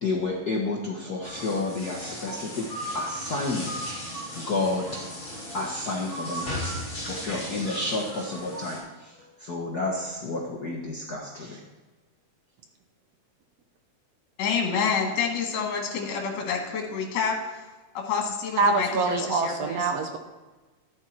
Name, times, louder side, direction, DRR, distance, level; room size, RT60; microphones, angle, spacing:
voice 1, 0.0-3.9 4.3-5.0 5.5-6.7 7.0-11.6, left 2 dB, 75° left, -1 dB, 0.9 m, -31 dB
sound 1, 1.2-8.8, equal, 15° left, 4.9 m, -36 dB
voice 2, 14.4-17.7 17.9-19.9, left 6 dB, 60° left, 1 dB, 2.8 m, -28 dB
voice 3, 18.6-20.2, right 3 dB, 65° right, 5 dB, 1.7 m, -24 dB
14.0 x 11.0 x 4.4 m, 1.2 s
omnidirectional pair, 3.8 m